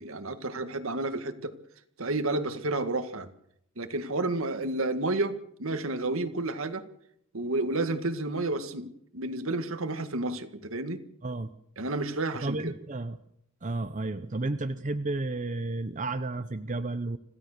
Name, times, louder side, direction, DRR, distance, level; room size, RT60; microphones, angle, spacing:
voice 1, 0.0-1.6 2.0-3.3 3.8-6.9 7.3-11.0 11.8-12.7, right 2 dB, 75° right, 2.0 m, -31 dB
voice 2, 12.4-13.2 13.6-17.2, right 2 dB, 35° right, 0.8 m, -32 dB
26.0 x 16.0 x 6.7 m
head